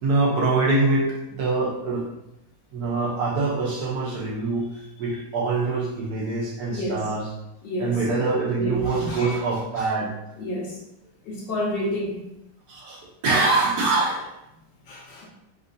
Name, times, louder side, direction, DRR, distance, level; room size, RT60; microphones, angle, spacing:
voice 1, 0.0-2.1 2.7-4.7 5.0-7.3 7.8-10.1 12.7-14.3, right 3 dB, 60° right, -3 dB, 1.4 m, -24 dB
voice 2, 6.7-7.1 7.6-8.0 8.5-9.4 9.8-9.9 10.4-10.8 11.2-12.3 14.9-15.3, left 1 dB, 80° left, -3 dB, 1.7 m, -30 dB
4.3 x 2.5 x 4.0 m, 0.85 s
omnidirectional pair, 1.9 m